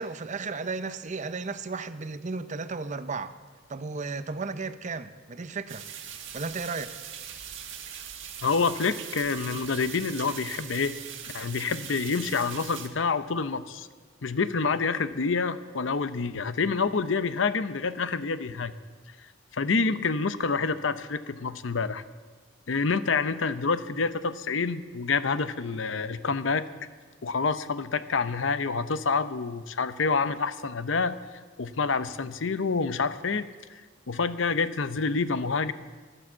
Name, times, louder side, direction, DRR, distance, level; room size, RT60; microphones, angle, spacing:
voice 1, 0.0-3.3 3.7-5.8 6.3-7.0 7.3-7.4, right 4 dB, 40° right, 12 dB, 0.6 m, -34 dB
sound 1, 5.7-12.9, right 9 dB, 70° right, 1.6 m, -41 dB
voice 2, 8.4-10.9 11.3-13.9 14.2-18.7 19.5-22.0 22.7-26.7 27.2-31.2 31.6-33.5 34.1-35.7, left 4 dB, 70° left, 12 dB, 0.7 m, -27 dB
13.5 x 12.0 x 7.3 m, 1.4 s
head